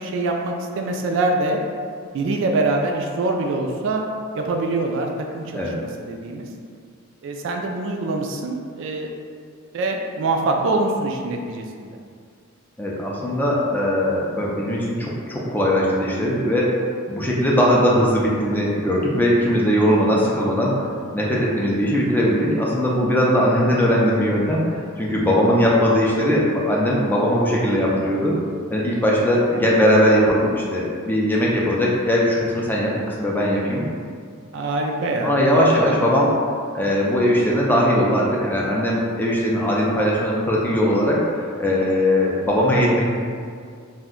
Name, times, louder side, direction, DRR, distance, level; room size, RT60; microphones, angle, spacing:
voice 1, 0.0-1.6 2.1-4.0 4.3-6.5 7.2-9.1 9.7-12.0 26.2-26.3 29.5-29.7 34.5-36.0, right 2 dB, 65° right, 2 dB, 0.3 m, -24 dB
voice 2, 12.8-16.7 17.1-20.8 21.1-28.4 28.7-33.8 35.2-36.3 36.7-43.1, equal, 10° left, -4 dB, 0.4 m, -20 dB
2.5 x 2.1 x 3.6 m, 2.2 s
head